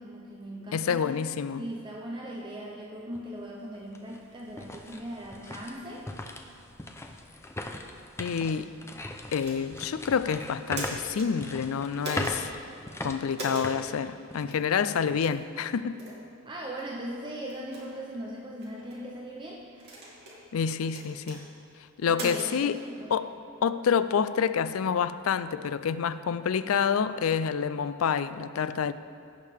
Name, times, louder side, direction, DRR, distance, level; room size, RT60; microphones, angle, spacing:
voice 1, 0.0-1.2 1.6-6.1 16.4-20.0 22.0-23.1, right 1 dB, 20° right, 0.7 m, -39 dB
voice 2, 0.7-1.6 8.2-8.7 9.3-12.5 13.0-16.0 20.5-21.4 22.0-22.8 23.1-23.4 23.6-28.9, left 7 dB, 80° left, 0.4 m, -28 dB
sound 1, 3.1-3.2 3.7-14.7 15.0-15.2 15.8-16.1, left 1 dB, 10° left, 0.5 m, -40 dB
sound 2, 9.4-9.9 10.5-11.3 12.0-12.4 13.3-13.7 14.5-14.6 15.2-15.4 16.0-16.2 16.8-16.9 17.5-17.8 18.6-19.0 19.8-20.4 20.9-21.4 22.1-22.5, right 1 dB, 50° right, 2.3 m, -38 dB
16.5 x 6.5 x 3.5 m
head